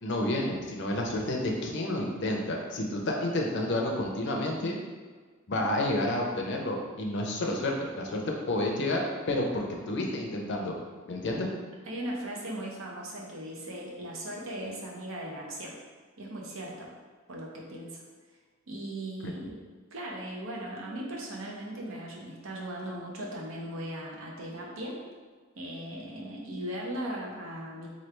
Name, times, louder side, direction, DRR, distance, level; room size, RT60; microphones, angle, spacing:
voice 1, 0.0-4.8 5.5-8.2 8.5-10.7 11.1-11.5 19.2-19.3, left 1 dB, 60° left, 0 dB, 0.6 m, -30 dB
voice 2, 11.8-15.8 16.2-16.9 17.3-18.0 18.7-19.5 19.9-25.0 25.5-27.9, right 1 dB, 75° right, -2 dB, 0.8 m, -38 dB
3.2 x 2.4 x 4.4 m, 1.5 s
head